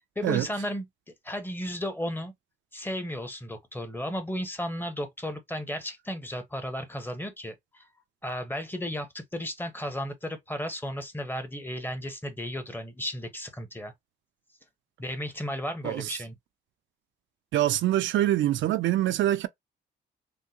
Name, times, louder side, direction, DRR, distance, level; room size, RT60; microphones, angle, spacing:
voice 1, 0.2-0.9 1.2-2.3 2.7-7.9 8.2-13.9 15.0-16.3, equal, 10° left, 0.9 m, -34 dB
voice 2, 15.8-16.1 17.5-19.5, right 13 dB, 70° right, 0.4 m, -25 dB
3.5 x 2.2 x 2.8 m
cardioid pair, 90°, 20 cm